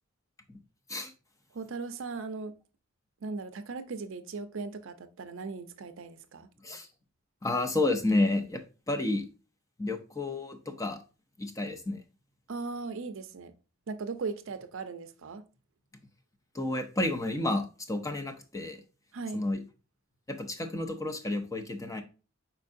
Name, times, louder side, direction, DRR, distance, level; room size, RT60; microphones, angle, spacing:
voice 1, 1.5-2.6 3.2-6.5 12.5-13.5 13.9-15.4 19.1-19.4, right 4 dB, 65° right, 0.5 m, -38 dB
voice 2, 7.4-9.3 9.8-11.0 11.4-12.0 16.5-18.8 19.3-19.6 20.3-22.0, left 2 dB, 15° left, 0.5 m, -30 dB
4.6 x 4.5 x 2.5 m
head